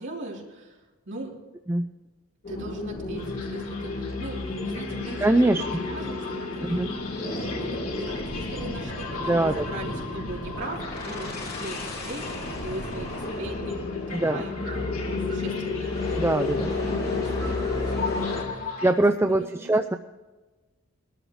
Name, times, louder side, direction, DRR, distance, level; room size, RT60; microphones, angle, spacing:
voice 1, 0.0-1.4 2.5-13.8 14.1-16.2 16.7-20.0, right 2 dB, 55° right, -3 dB, 3.5 m, -40 dB
sound 1, 2.4-18.4, left 3 dB, 45° left, 2.5 m, -32 dB
sound 2, 3.2-18.9, left 4 dB, 85° left, 2.6 m, -39 dB
voice 2, 5.2-5.6 6.6-6.9 9.2-9.7 14.1-14.4 16.2-16.7 18.8-20.0, right 2 dB, 10° right, 6 dB, 0.4 m, -22 dB
21.5 x 13.0 x 3.1 m, 1.2 s
head